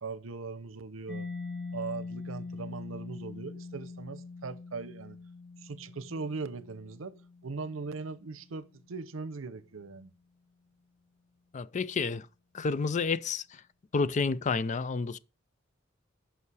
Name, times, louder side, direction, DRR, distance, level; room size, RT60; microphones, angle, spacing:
voice 1, 0.0-1.3 1.7-5.2 5.6-10.1, right 4 dB, 90° right, 0.7 m, -40 dB
Mallet percussion, 1.1-8.6, left 3 dB, 60° left, 1.3 m, -43 dB
voice 2, 11.5-12.3 12.5-13.6 13.9-15.2, left 4 dB, 35° left, 0.4 m, -30 dB
8.3 x 5.8 x 4.8 m
head